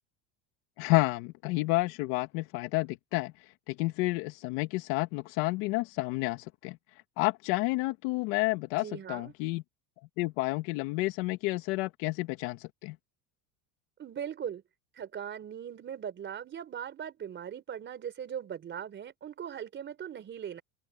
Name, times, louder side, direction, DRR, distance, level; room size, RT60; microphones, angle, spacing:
voice 1, 0.8-3.3 3.7-6.8 7.2-9.6 10.2-13.0, left 21 dB, 65° left, 1.7 m, -30 dB
voice 2, 8.8-9.3 14.0-14.6 15.0-20.6, right 9 dB, 25° right, 4.2 m, -39 dB
open air
cardioid pair, 165°, 44 cm